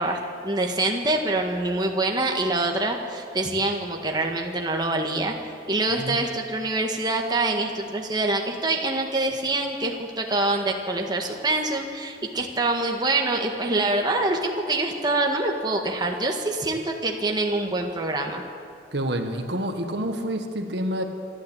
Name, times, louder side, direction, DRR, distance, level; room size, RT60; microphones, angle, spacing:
voice 1, 0.0-5.3 5.7-18.4, right 2 dB, 25° right, 1 dB, 1.7 m, -25 dB
voice 2, 18.9-21.0, right 1 dB, 65° right, 5 dB, 1.7 m, -28 dB
26.5 x 11.5 x 8.9 m, 2.5 s
head